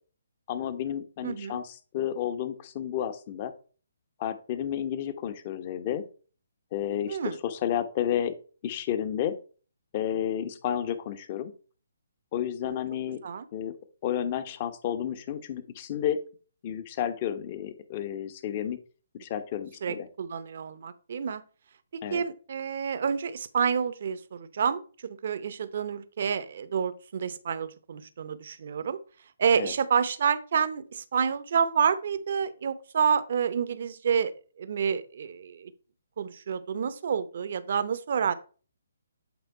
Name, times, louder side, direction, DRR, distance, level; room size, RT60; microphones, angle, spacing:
voice 1, 0.5-1.6 1.9-3.5 4.2-6.0 6.7-7.2 7.4-8.3 8.6-9.4 9.9-11.5 12.3-13.2 13.5-13.7 14.0-16.2 16.6-18.8 19.2-20.1 22.0-22.2 29.6-29.7, left 10 dB, 35° left, 11 dB, 1.0 m, -31 dB
voice 2, 1.2-1.6 7.1-7.4 12.6-12.8 13.2-13.5 19.8-21.4 22.1-29.0 29.4-34.3 34.6-35.7 36.2-38.3, right 7 dB, 55° right, 13 dB, 0.8 m, -28 dB
8.2 x 3.6 x 4.7 m, 0.38 s
hypercardioid pair, 150°, 0 cm